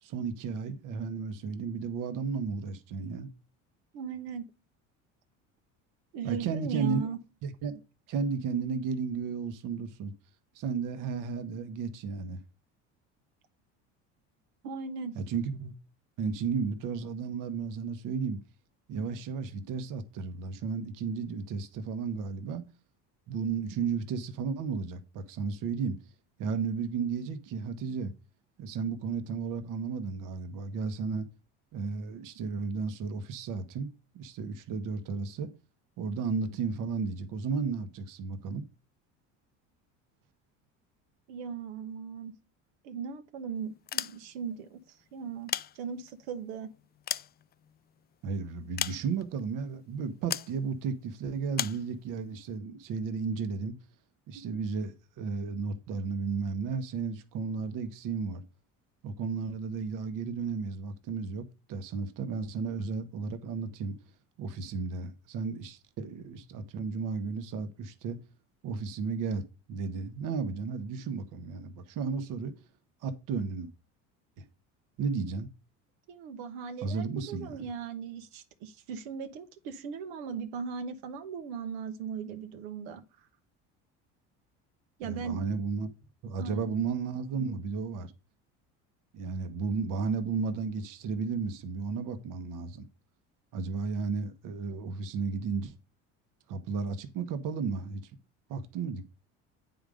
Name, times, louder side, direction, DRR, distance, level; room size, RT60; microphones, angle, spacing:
voice 1, 0.0-3.3 6.2-7.0 7.4-7.8 8.1-10.1 10.5-12.4 15.1-15.7 16.2-18.4 18.9-22.6 23.3-26.0 26.4-28.1 28.6-31.3 31.7-35.5 36.0-38.7 48.2-53.8 54.3-58.4 59.0-64.0 64.4-68.2 68.6-72.5 73.0-73.7 75.0-75.5 76.8-77.7 85.0-85.9 86.2-88.1 89.1-92.9 93.5-95.7 96.5-98.0 98.5-99.0, right 5 dB, 60° right, 1.2 m, -33 dB
voice 2, 3.9-4.4 6.1-7.2 14.6-15.1 41.3-42.3 42.8-46.7 76.1-83.0 85.0-85.4 86.4-86.8, right 6 dB, 80° right, 1.2 m, -38 dB
sound 1, 43.8-44.6 45.3-46.3 46.7-48.0 48.8-49.4 50.3-50.6 51.5-51.9, left 10 dB, 30° left, 0.4 m, -35 dB
9.2 x 3.8 x 5.0 m
supercardioid pair, 85°, 36 cm